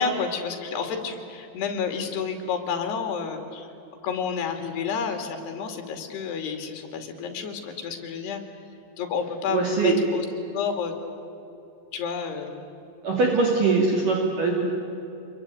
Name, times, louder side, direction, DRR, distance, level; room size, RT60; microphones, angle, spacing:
voice 1, 0.0-3.7 4.0-8.4 9.0-10.3 10.5-10.9 11.9-12.6, left 6 dB, 60° left, 5 dB, 4.4 m, -30 dB
voice 2, 9.5-10.0 13.0-14.7, right 4 dB, 50° right, -1 dB, 3.8 m, -22 dB
27.0 x 22.5 x 9.3 m, 2.9 s
omnidirectional pair, 5.5 m